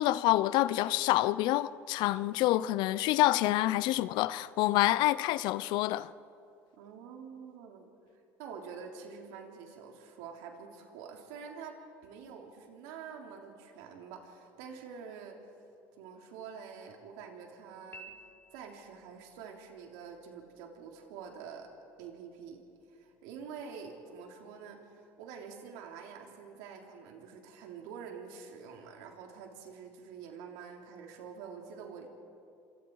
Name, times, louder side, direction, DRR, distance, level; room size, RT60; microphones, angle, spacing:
voice 1, 0.0-6.1, left 16 dB, 70° left, 0.7 m, -27 dB
voice 2, 6.8-7.9 8.4-11.8 12.0-15.4 16.0-18.1 18.5-21.7 22.0-22.6 22.9-32.1, right 6 dB, 85° right, 3.4 m, -47 dB
Piano, 17.9-19.0, right 1 dB, 25° left, 4.7 m, -51 dB
27.0 x 24.0 x 4.8 m
supercardioid pair, 90°, 8 cm